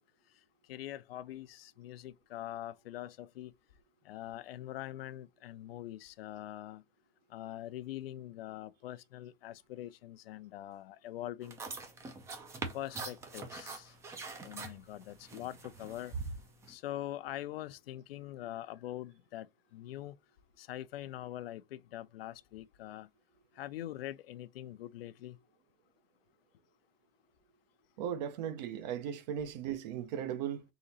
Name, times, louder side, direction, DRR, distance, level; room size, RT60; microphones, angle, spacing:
voice 1, 0.7-3.5 4.1-6.8 7.3-11.6 12.7-13.9 14.4-16.1 16.7-19.5 19.7-20.1 20.6-23.1 23.6-25.4, left 13 dB, 80° left, 0.6 m, -43 dB
sound 1, 11.4-16.7, right 3 dB, 10° right, 0.4 m, -43 dB
voice 2, 28.0-30.6, right 9 dB, 45° right, 0.7 m, -37 dB
3.9 x 2.9 x 4.0 m
supercardioid pair, 160°, 29 cm